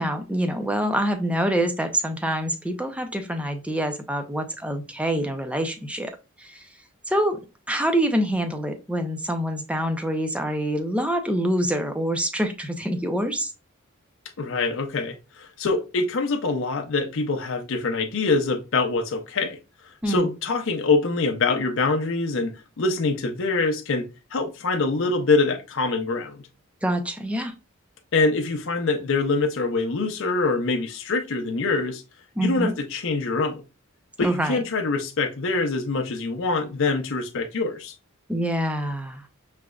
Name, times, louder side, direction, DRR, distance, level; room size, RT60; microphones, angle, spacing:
voice 1, 0.0-6.1 6.4-6.7 7.1-7.4 7.7-13.5 20.0-20.3 26.8-27.5 32.4-32.7 34.2-34.6 38.3-39.2, right 1 dB, 5° right, 0.5 m, -26 dB
voice 2, 14.4-19.6 20.1-26.4 28.1-32.0 32.4-33.6 34.2-38.0, left 3 dB, 65° left, 0.6 m, -24 dB
5.0 x 3.3 x 2.3 m
head